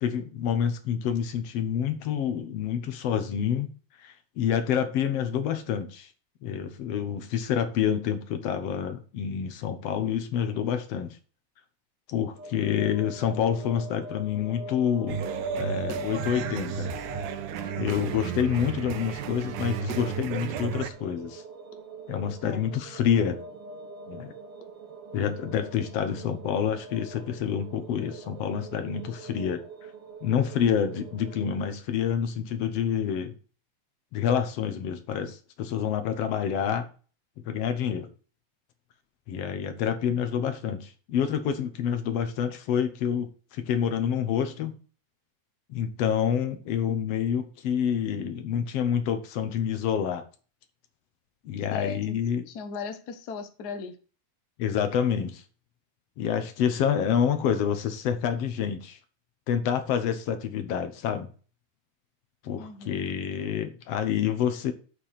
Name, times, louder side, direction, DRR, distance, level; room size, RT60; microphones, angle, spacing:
voice 1, 0.0-3.7 4.0-6.1 6.4-11.2 12.1-15.2 15.6-16.9 17.8-21.4 22.1-23.4 24.1-24.3 25.1-29.6 30.2-33.3 34.1-36.9 37.4-38.1 39.3-44.8 45.7-50.2 51.5-52.4 54.6-55.4 56.2-59.0 59.5-61.3 62.4-64.7, left 8 dB, 65° left, 1.8 m, -28 dB
sound 1, 12.3-31.7, right 1 dB, 60° right, 1.7 m, -43 dB
sound 2, 15.1-20.9, right 7 dB, 85° right, 2.2 m, -33 dB
voice 2, 18.0-18.4 22.4-22.7 51.7-54.0 62.6-63.0, left 5 dB, 80° left, 0.8 m, -38 dB
7.5 x 4.5 x 6.6 m
omnidirectional pair, 3.4 m